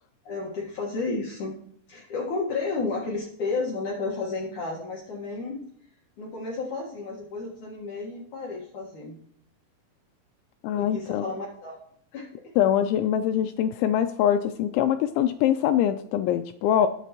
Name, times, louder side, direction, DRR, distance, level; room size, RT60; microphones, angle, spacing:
voice 1, 0.2-1.6 1.9-5.6 6.2-9.2 10.7-11.8 12.1-12.5, left 3 dB, 65° left, -2 dB, 1.9 m, -32 dB
voice 2, 10.6-11.3 12.6-16.9, left 10 dB, 85° left, 8 dB, 2.7 m, -23 dB
20.5 x 8.1 x 3.0 m, 0.64 s
omnidirectional pair, 5.7 m